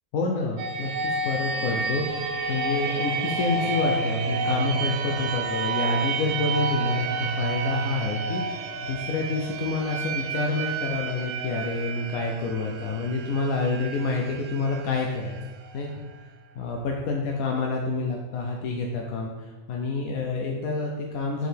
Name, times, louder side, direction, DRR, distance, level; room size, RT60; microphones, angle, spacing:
voice 1, 0.1-15.4 15.7-15.9 16.5-21.5, left 3 dB, 90° left, 0 dB, 1.1 m, -28 dB
sound 1, 0.6-16.2, right 3 dB, 70° right, 0.9 m, -30 dB
5.9 x 5.1 x 3.4 m, 1.1 s
omnidirectional pair, 1.5 m